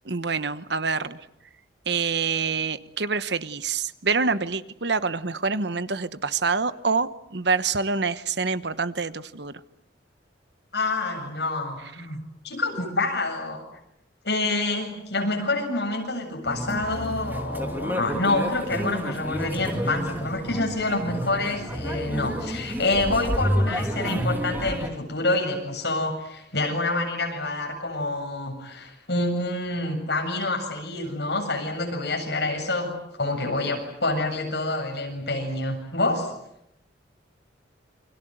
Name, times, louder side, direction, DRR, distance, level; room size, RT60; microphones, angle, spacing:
voice 1, 0.1-1.2 1.9-9.5, right 4 dB, 65° right, 14 dB, 1.1 m, -26 dB
voice 2, 10.7-13.6 14.2-36.3, left 2 dB, 60° left, 2 dB, 7.7 m, -27 dB
sound 1, 16.4-24.9, equal, 10° right, 2.5 m, -30 dB
28.5 x 25.5 x 8.0 m, 0.81 s
head